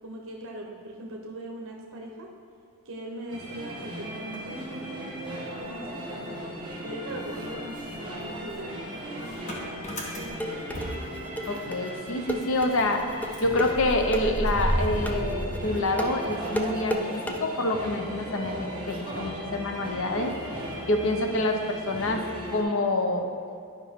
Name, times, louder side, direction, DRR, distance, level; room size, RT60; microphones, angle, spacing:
voice 1, 0.0-2.3 2.8-6.3 6.8-9.7 10.1-10.7, right 1 dB, 65° right, 0 dB, 0.9 m, -40 dB
sound 1, 3.3-22.6, equal, 20° right, 1.4 m, -38 dB
Motor vehicle (road) / Engine starting, 5.6-6.8 7.1-11.8 12.1-12.2 12.4-16.5, equal, 35° left, 1.1 m, -34 dB
sound 2, 9.9-17.4, equal, 5° left, 0.5 m, -32 dB
voice 2, 11.5-13.0 13.4-20.3 20.9-22.2 22.5-23.3, left 2 dB, 65° left, 5 dB, 0.8 m, -27 dB
11.0 x 5.3 x 3.6 m, 2.4 s
head